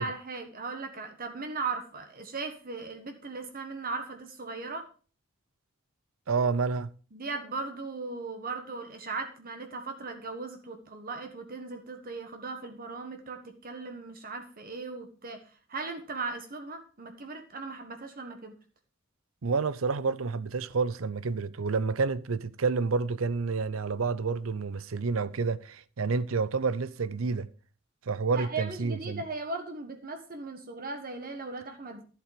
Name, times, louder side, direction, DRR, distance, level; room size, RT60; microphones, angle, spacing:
voice 1, 0.0-4.8 7.1-15.4 15.7-18.5 28.3-32.0, right 4 dB, 45° right, 1.5 m, -38 dB
voice 2, 6.3-6.9 19.4-27.5 28.1-29.2, right 4 dB, 75° right, 0.6 m, -29 dB
11.5 x 7.8 x 5.1 m
head